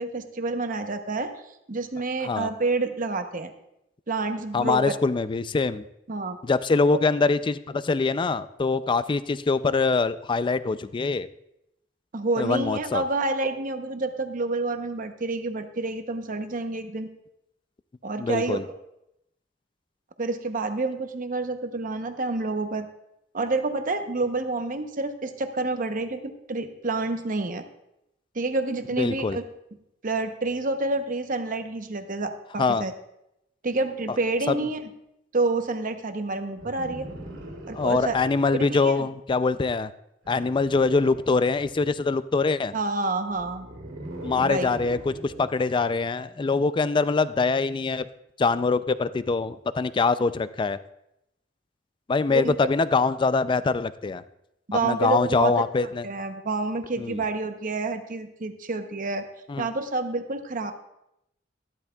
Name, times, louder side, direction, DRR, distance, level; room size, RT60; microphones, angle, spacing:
voice 1, 0.0-1.3 1.7-3.5 4.1-4.9 6.1-6.4 12.1-17.1 18.0-18.6 20.2-22.9 23.3-27.6 28.3-29.4 30.0-32.9 33.6-34.8 35.3-37.1 37.7-38.2 38.5-39.1 42.7-43.7 44.4-44.7 52.3-52.6 54.7-55.5 55.8-59.3 59.6-60.7, right 3 dB, 45° right, 8 dB, 0.8 m, -28 dB
voice 2, 4.5-5.8 6.4-11.3 12.4-13.0 18.2-18.6 29.0-29.4 32.6-32.8 34.5-34.6 37.7-39.9 40.3-42.7 44.2-48.1 48.4-50.8 52.1-54.2 54.7-56.1 57.0-57.2 59.5-59.7, left 4 dB, 25° left, 14 dB, 0.3 m, -24 dB
sound 1, 36.6-38.6 40.2-42.0 43.3-45.6 46.9-47.0, right 1 dB, 85° right, 2.6 m, -41 dB
13.0 x 12.0 x 2.3 m, 0.83 s
head